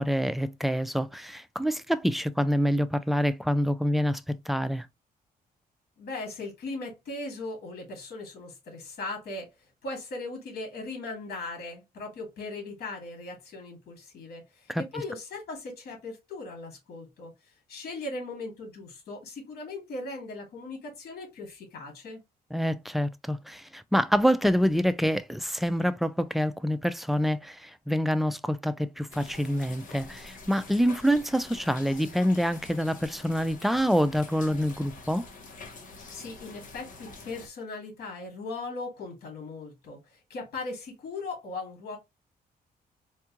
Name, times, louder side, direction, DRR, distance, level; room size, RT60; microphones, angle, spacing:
voice 1, 0.0-4.2 4.5-4.9 14.7-14.8 22.5-35.2, equal, ahead, 0.3 m, -26 dB
voice 2, 6.0-9.5 9.8-17.3 17.7-22.2 36.1-42.0, left 2 dB, 75° left, 1.9 m, -38 dB
sound 1, 29.1-37.5, left 3 dB, 55° left, 1.2 m, -46 dB
4.4 x 2.4 x 2.8 m
cardioid pair, 120°, 16 cm